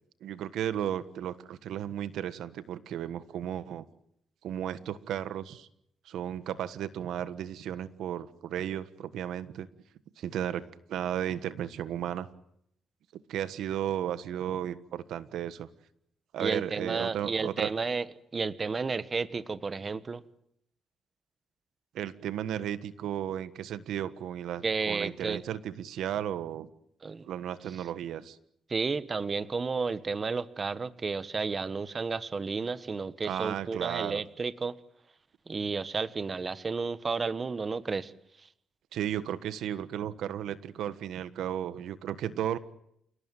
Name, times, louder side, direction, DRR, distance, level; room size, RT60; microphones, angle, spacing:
voice 1, 0.2-3.8 4.4-5.7 6.0-9.7 10.2-12.3 13.3-15.7 16.3-17.7 21.9-26.7 27.2-28.4 33.2-34.2 38.9-42.6, right 10 dB, 80° right, 13 dB, 1.5 m, -34 dB
voice 2, 16.4-18.0 18.3-20.2 24.6-25.4 27.0-27.3 28.7-34.8 35.5-38.1, right 4 dB, 30° right, 14 dB, 1.3 m, -32 dB
29.0 x 18.5 x 9.2 m, 0.75 s
cardioid pair, 105°, 0 cm